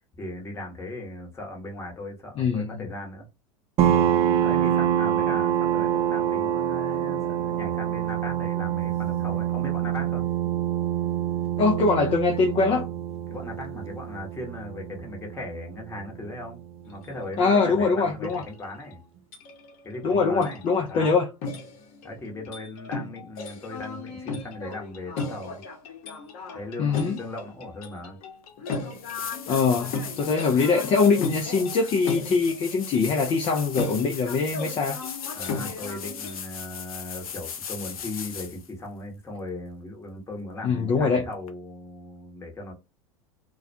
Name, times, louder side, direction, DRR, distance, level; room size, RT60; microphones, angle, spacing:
voice 1, 0.2-3.3 4.4-10.3 13.3-19.0 19.8-20.6 20.9-21.2 22.0-25.6 26.5-28.2 35.3-42.7, left 1 dB, 15° left, 1.0 m, -38 dB
voice 2, 2.4-2.8 11.6-12.9 17.4-18.4 20.0-21.3 26.8-27.2 29.5-35.0 40.6-41.2, left 4 dB, 30° left, 0.5 m, -23 dB
sound 1, 3.8-17.1, right 10 dB, 35° right, 0.4 m, -26 dB
sound 2, 16.9-17.1 17.3-17.7 18.2-18.9 19.3-20.1 20.4-21.1 21.4-36.4, left 3 dB, 50° left, 1.0 m, -36 dB
sound 3, 28.4-28.5 28.9-38.7 41.5-41.6, left 7 dB, 80° left, 0.5 m, -38 dB
2.2 x 2.2 x 2.6 m
hypercardioid pair, 90°, 18 cm